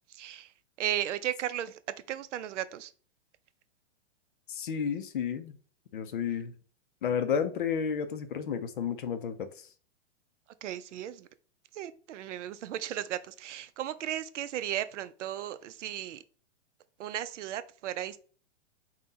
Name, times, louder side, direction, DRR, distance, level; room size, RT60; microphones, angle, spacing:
voice 1, 0.8-1.7 2.1-2.9 10.6-11.3 11.8-16.2 17.0-18.2, right 12 dB, 85° right, 0.5 m, -35 dB
voice 2, 4.5-5.6 5.9-6.5 7.0-9.7, left 7 dB, 45° left, 0.4 m, -32 dB
3.7 x 2.2 x 3.9 m
hypercardioid pair, 175°, 35 cm